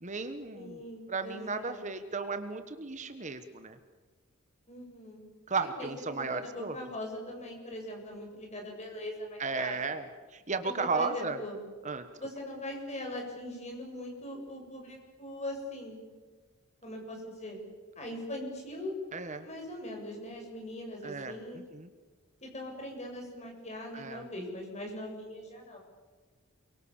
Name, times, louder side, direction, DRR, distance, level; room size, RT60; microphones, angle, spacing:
voice 1, 0.0-0.8 1.1-3.8 5.5-6.8 9.4-11.4 11.8-12.1 19.1-19.5 21.0-21.4 21.7-21.9 23.9-24.2, right 4 dB, 35° right, 9 dB, 1.2 m, -34 dB
voice 2, 0.5-1.9 4.7-5.2 5.6-9.8 10.6-11.6 12.2-16.0 16.8-17.6 18.0-18.9 19.4-21.7 22.4-25.8, left 1 dB, 30° left, 1 dB, 7.4 m, -41 dB
29.5 x 23.5 x 7.3 m, 1.4 s
head